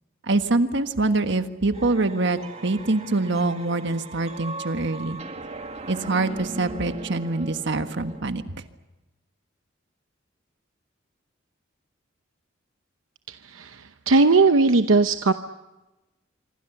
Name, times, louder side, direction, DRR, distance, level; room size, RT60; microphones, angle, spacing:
voice 1, 0.3-5.2 5.9-8.4, right 2 dB, 60° right, 9 dB, 1.5 m, -24 dB
sound 1, 1.7-8.3, right 3 dB, 35° right, 1.9 m, -39 dB
voice 2, 13.3-15.3, right 3 dB, 80° right, 9 dB, 0.9 m, -19 dB
26.0 x 24.5 x 7.1 m, 1.1 s
head